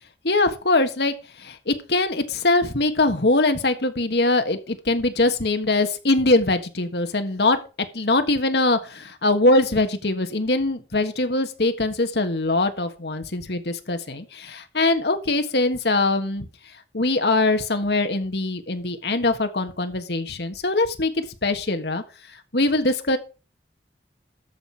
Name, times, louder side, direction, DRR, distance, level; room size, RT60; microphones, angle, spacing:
voice 1, 0.2-7.6 7.9-16.5 16.9-22.0 22.3-23.2, left 2 dB, 70° left, 7 dB, 1.5 m, -22 dB
13.0 x 6.0 x 4.7 m, 0.33 s
head